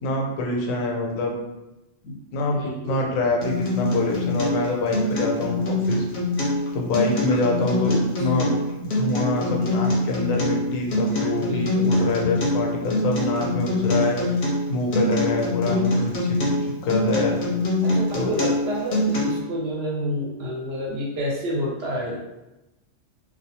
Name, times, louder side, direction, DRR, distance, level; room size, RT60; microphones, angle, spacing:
voice 1, 0.0-1.3 2.0-5.6 5.9-6.0 6.7-8.5 8.8-14.2 14.7-16.0 16.3-17.4 18.1-18.3, left 2 dB, 90° left, 0 dB, 1.0 m, -25 dB
voice 2, 2.5-3.1 7.8-8.3 11.3-12.4 15.6-16.2 17.8-22.2, equal, 65° right, -2 dB, 0.7 m, -30 dB
Acoustic guitar, 3.4-19.4, left 2 dB, 50° left, 0.6 m, -24 dB
2.2 x 2.2 x 2.7 m, 0.98 s
omnidirectional pair, 1.3 m